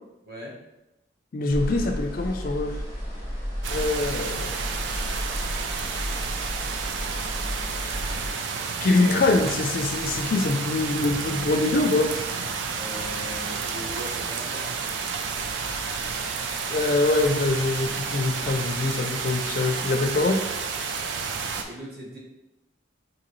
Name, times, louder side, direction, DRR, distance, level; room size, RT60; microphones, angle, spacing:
voice 1, 0.3-0.6 12.8-14.7 21.6-22.2, left 1 dB, 55° right, -2 dB, 0.9 m, -39 dB
voice 2, 1.3-2.8 3.7-4.9 8.8-12.1 16.7-20.4, left 2 dB, 45° left, 5 dB, 0.3 m, -24 dB
sound 1, 1.5-8.3, equal, 15° right, 0.9 m, -33 dB
sound 2, 3.6-21.6, right 5 dB, 75° right, 0.4 m, -31 dB
3.8 x 2.7 x 3.0 m, 0.96 s
head